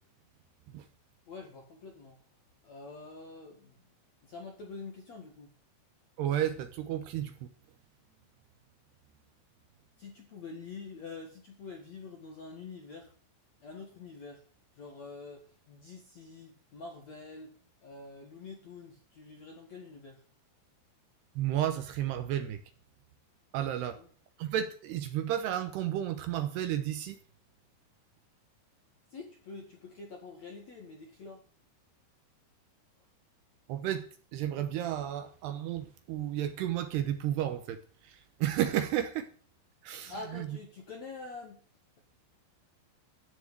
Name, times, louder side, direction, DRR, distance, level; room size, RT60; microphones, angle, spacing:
voice 1, 1.3-2.2 2.6-3.8 4.2-5.5 10.0-13.1 13.6-14.4 14.7-17.6 17.8-20.2 23.8-24.1 29.1-31.5 40.1-41.6, left 4 dB, 60° left, 1.9 m, -46 dB
voice 2, 6.2-7.5 21.4-22.6 23.5-24.0 24.4-27.2 33.7-34.1 34.3-39.3 39.8-40.5, right 11 dB, 75° right, 2.5 m, -32 dB
14.0 x 6.2 x 9.1 m
omnidirectional pair, 5.8 m